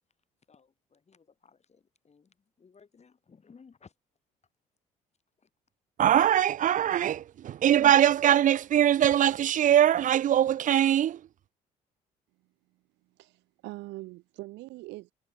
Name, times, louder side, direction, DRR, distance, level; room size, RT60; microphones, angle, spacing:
voice 1, 0.5-3.9 5.4-5.5, left 5 dB, 35° left, 6.4 m, -58 dB
voice 2, 6.0-11.2, right 11 dB, 45° right, 0.5 m, -22 dB
voice 3, 13.2-15.1, right 20 dB, 70° right, 2.9 m, -42 dB
hypercardioid pair, 60°, 19 cm